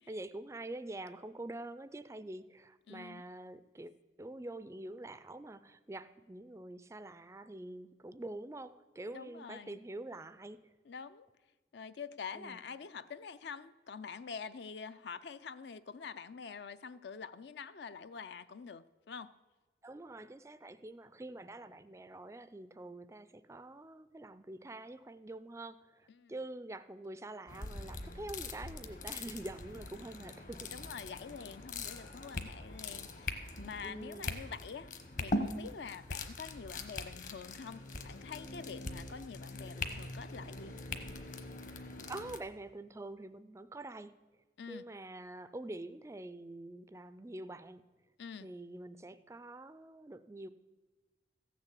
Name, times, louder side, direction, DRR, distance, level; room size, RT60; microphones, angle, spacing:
voice 1, 0.1-3.9 4.2-10.7 12.3-12.6 19.8-30.7 33.8-34.3 42.1-44.1 44.7-47.8 48.4-50.5, right 2 dB, 15° right, 0.3 m, -46 dB
voice 2, 2.9-3.2 9.1-9.8 10.9-11.3 11.7-19.3 26.1-26.3 30.7-34.9 35.2-40.8 44.6-44.8 48.2-48.5, left 6 dB, 65° left, 0.5 m, -46 dB
sound 1, 27.5-42.4, left 2 dB, 45° left, 1.0 m, -42 dB
15.0 x 6.8 x 8.2 m
head